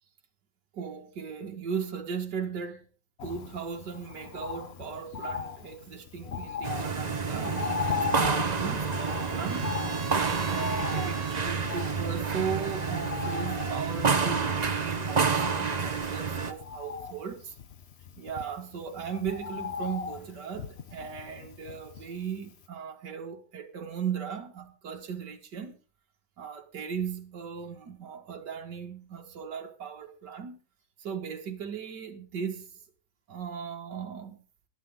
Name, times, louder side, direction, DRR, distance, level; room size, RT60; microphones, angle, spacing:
voice 1, 0.7-2.9 3.2-9.7 10.4-17.5 18.2-25.8 26.4-30.6 31.0-32.7 33.3-34.4, right 7 dB, 75° right, 2.3 m, -37 dB
Bird, 3.2-22.3 22.6-22.7, left 7 dB, 45° left, 1.0 m, -38 dB
sound 1, 6.6-16.5, right 5 dB, 30° right, 0.9 m, -29 dB
Trumpet, 7.8-11.7, right 6 dB, 55° right, 3.7 m, -42 dB
21.0 x 9.0 x 3.7 m
omnidirectional pair, 1.9 m